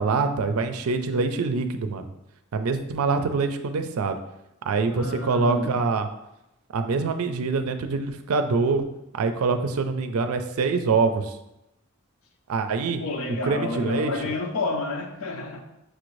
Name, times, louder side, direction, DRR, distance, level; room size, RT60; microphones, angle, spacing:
voice 1, 0.0-2.0 2.5-4.2 4.7-6.1 6.7-8.8 9.1-11.4 12.5-13.0 13.4-14.1, right 4 dB, 90° right, 8 dB, 0.4 m, -24 dB
voice 2, 4.9-5.8 13.0-15.6, left 2 dB, 85° left, 3 dB, 0.7 m, -30 dB
6.2 x 2.6 x 3.1 m, 0.88 s
head